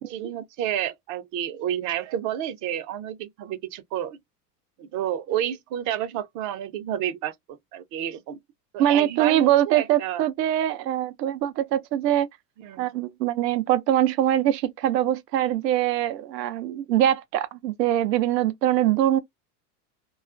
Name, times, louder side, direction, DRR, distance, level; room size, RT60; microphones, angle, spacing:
voice 1, 0.1-4.2 4.8-8.4 8.7-10.3 12.6-12.9, right 11 dB, 40° right, 0.5 m, -30 dB
voice 2, 8.8-12.3 12.8-19.2, right 12 dB, 90° right, 0.5 m, -23 dB
2.3 x 2.2 x 2.4 m
hypercardioid pair, 105°, 48 cm